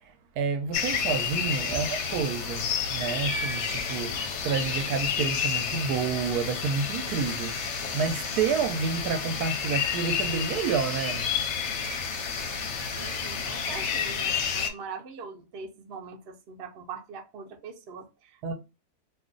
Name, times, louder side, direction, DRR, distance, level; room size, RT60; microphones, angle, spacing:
voice 1, 0.0-11.3 18.4-18.5, right 6 dB, 75° right, 1.1 m, -29 dB
sound 1, 0.7-14.7, left 6 dB, 60° left, 0.8 m, -30 dB
voice 2, 13.0-18.5, right 5 dB, 60° right, 0.6 m, -42 dB
2.6 x 2.4 x 3.7 m
omnidirectional pair, 1.7 m